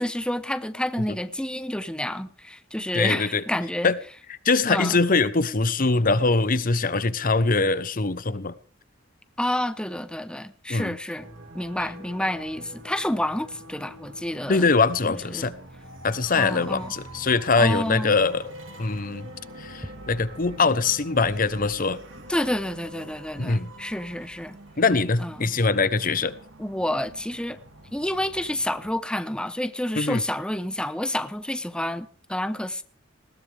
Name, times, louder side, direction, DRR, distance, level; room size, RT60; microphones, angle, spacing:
voice 1, 0.0-3.9 4.7-5.0 9.4-11.3 11.5-14.7 15.0-15.5 16.3-16.9 17.6-18.1 22.3-24.6 25.2-25.5 26.6-27.6 27.9-32.8, left 1 dB, 5° left, 1.0 m, -29 dB
voice 2, 2.9-3.4 3.8-4.0 4.3-8.5 10.7-11.0 14.5-15.5 16.0-18.5 18.8-19.3 19.6-22.0 23.4-23.7 24.8-26.3 30.0-30.2, left 4 dB, 45° left, 0.9 m, -22 dB
sound 1, 11.2-28.9, right 1 dB, 80° right, 3.3 m, -45 dB
20.0 x 18.0 x 3.5 m
head